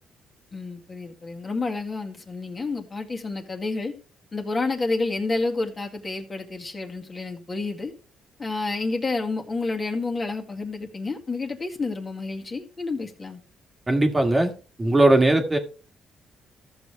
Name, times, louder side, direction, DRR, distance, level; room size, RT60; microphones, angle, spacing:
voice 1, 0.5-3.9 4.3-7.9 8.4-13.4, left 3 dB, 30° left, 2.1 m, -29 dB
voice 2, 13.9-14.5 14.8-15.6, right 2 dB, 20° right, 1.7 m, -19 dB
14.0 x 6.6 x 3.4 m
cardioid pair, 90°, 0 cm